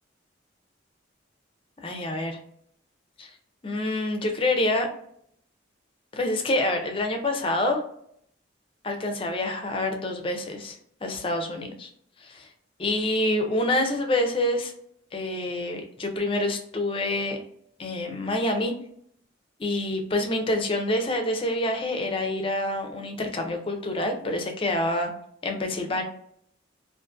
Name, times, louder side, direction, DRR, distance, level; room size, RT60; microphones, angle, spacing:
voice 1, 1.8-2.4 3.2-3.3 3.6-4.9 6.1-7.8 8.8-11.9 12.2-12.5 12.8-14.7 15.1-17.4 17.8-18.7 19.6-25.1 25.4-26.0, left 1 dB, 25° left, 4 dB, 0.4 m, -27 dB
2.4 x 2.4 x 2.4 m, 0.68 s
head